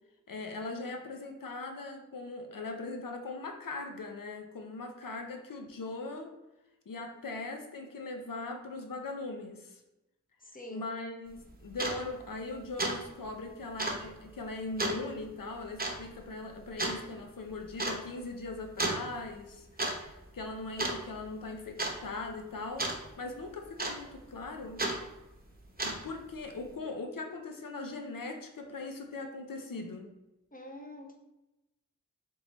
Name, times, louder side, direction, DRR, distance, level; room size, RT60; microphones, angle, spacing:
voice 1, 0.3-6.3 6.9-9.8 10.7-24.8 25.8-30.1, left 3 dB, 85° left, 4 dB, 0.7 m, -40 dB
voice 2, 10.5-10.9 30.5-31.1, left 1 dB, 25° left, 2 dB, 0.9 m, -45 dB
sound 1, 11.3-11.4 11.7-12.0 12.4-12.5 12.8-13.0 13.2-13.3 13.8-14.0 14.8-15.0 15.8-16.0 16.8-17.0 17.8-18.0 18.8-19.0 19.6-20.0 20.2-20.5 20.8-21.3 21.8-22.0 22.8-23.0 23.8-24.2 24.8-25.0 25.6-26.1, right 2 dB, 30° right, 0.8 m, -32 dB
3.7 x 3.2 x 3.8 m, 0.98 s
wide cardioid pair, 40°, 32 cm